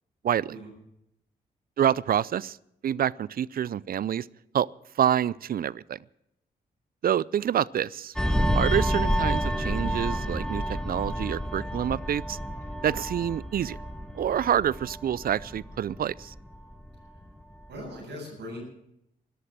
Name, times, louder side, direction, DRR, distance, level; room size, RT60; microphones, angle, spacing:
voice 1, 0.2-0.6 1.8-2.6 2.8-4.3 4.5-4.7 5.0-6.0 7.0-8.1 8.5-12.4 12.8-13.8 14.1-16.3, right 9 dB, 55° right, 23 dB, 0.5 m, -27 dB
sound 1, 8.2-17.2 17.5-17.8, equal, 5° left, 1.8 m, -29 dB
voice 2, 17.7-18.6, left 1 dB, 70° right, 0 dB, 7.7 m, -39 dB
13.5 x 11.5 x 7.6 m, 0.81 s
supercardioid pair, 45°, 18 cm